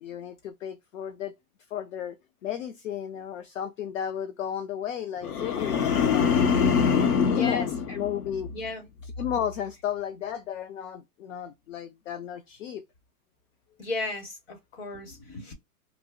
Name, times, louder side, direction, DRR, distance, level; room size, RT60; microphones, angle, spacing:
voice 1, 0.0-1.3 1.7-2.2 2.4-6.3 7.2-7.7 7.9-8.5 9.2-12.8, left 9 dB, 55° left, 0.5 m, -33 dB
sound 1, 5.2-8.6 9.0-9.4, left 6 dB, 75° left, 0.9 m, -25 dB
voice 2, 7.3-8.0 8.5-8.9 13.8-15.5, left 3 dB, 40° left, 1.0 m, -35 dB
2.8 x 2.1 x 3.6 m
supercardioid pair, 170°, 46 cm